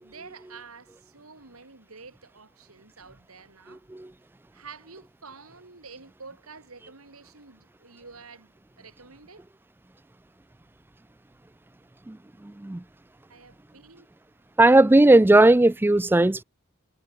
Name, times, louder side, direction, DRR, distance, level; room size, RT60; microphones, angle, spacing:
voice 1, 0.0-3.8 4.5-9.4 13.3-14.1, right 4 dB, 80° right, 2.9 m, -48 dB
voice 2, 3.7-4.1 12.1-12.2 12.4-12.8 14.6-16.4, right 2 dB, 10° right, 0.4 m, -17 dB
head